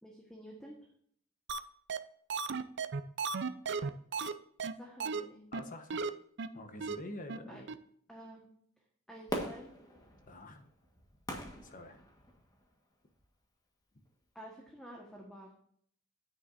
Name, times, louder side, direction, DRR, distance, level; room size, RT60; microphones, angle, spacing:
voice 1, 0.0-0.9 4.7-5.5 7.5-7.6 8.1-8.5 9.1-9.7 14.3-15.5, equal, 5° left, -1 dB, 1.5 m, -50 dB
sound 1, 1.5-1.6 1.9-2.0 2.3-4.3 4.6-4.7 5.0-5.2 5.5-5.6 5.9-6.1 6.4-6.5 6.8-7.0 7.3-7.4 7.7-7.8, right 5 dB, 60° right, 0.6 m, -34 dB
voice 2, 5.5-6.0 6.5-7.6 10.3-10.7 11.6-12.0, left 1 dB, 40° left, 6 dB, 1.2 m, -47 dB
Fireworks, 9.3-12.6 13.2-13.3, equal, 20° left, 1.5 m, -42 dB
10.0 x 8.8 x 2.7 m, 0.64 s
head